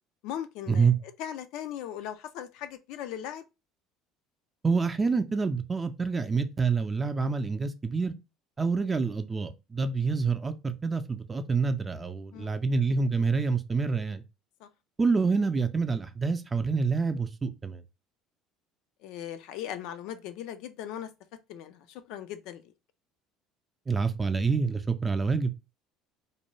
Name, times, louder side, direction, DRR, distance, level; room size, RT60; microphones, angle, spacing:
voice 1, 0.2-0.9 1.2-3.4 12.3-12.6 14.6-14.7 19.0-21.1 21.5-22.6, left 10 dB, 70° left, 0.3 m, -38 dB
voice 2, 4.6-8.1 8.6-14.2 15.0-17.8 23.9-25.5, right 4 dB, 25° right, 0.4 m, -27 dB
2.5 x 2.2 x 3.0 m
hypercardioid pair, 80°, 0 cm